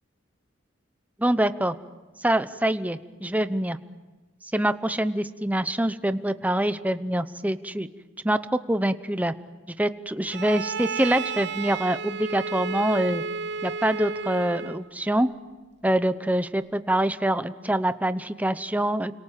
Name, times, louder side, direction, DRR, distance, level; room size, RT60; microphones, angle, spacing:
voice 1, 1.2-1.7 2.2-3.8 4.5-7.9 8.2-8.4 8.7-9.3 9.8-13.2 13.6-15.3 15.8-19.1, right 1 dB, 10° right, 12 dB, 0.8 m, -25 dB
Bowed string instrument, 10.3-14.9, right 5 dB, 60° right, 0.8 m, -32 dB
29.5 x 26.5 x 7.5 m, 1.3 s
head